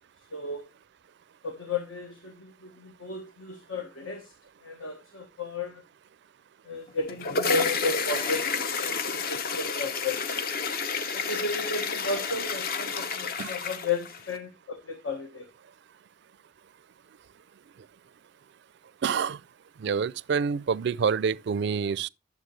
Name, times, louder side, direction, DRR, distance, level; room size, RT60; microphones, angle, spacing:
voice 1, 0.3-0.7 1.4-4.3 4.6-5.8 6.6-10.5 11.1-15.5, left 3 dB, 80° left, 1.3 m, -34 dB
sound 1, 6.9-14.4, left 5 dB, 50° left, 0.7 m, -30 dB
voice 2, 19.0-19.4 19.8-22.1, right 6 dB, 60° right, 0.4 m, -27 dB
11.0 x 7.3 x 3.2 m
head